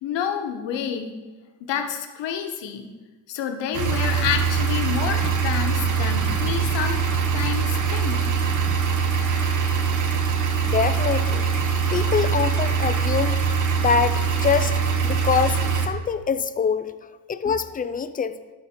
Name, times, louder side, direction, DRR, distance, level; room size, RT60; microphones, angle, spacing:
voice 1, 0.0-1.1 1.7-2.9 3.3-7.0 7.3-8.2, left 8 dB, 70° left, 5 dB, 1.1 m, -28 dB
sound 1, 3.7-15.9, right 6 dB, 40° right, 1.0 m, -23 dB
voice 2, 10.6-11.5 11.9-13.4 13.8-16.9 17.3-18.4, left 6 dB, 20° left, 12 dB, 0.3 m, -24 dB
12.0 x 4.1 x 4.4 m, 1.3 s
cardioid pair, 90°, 45 cm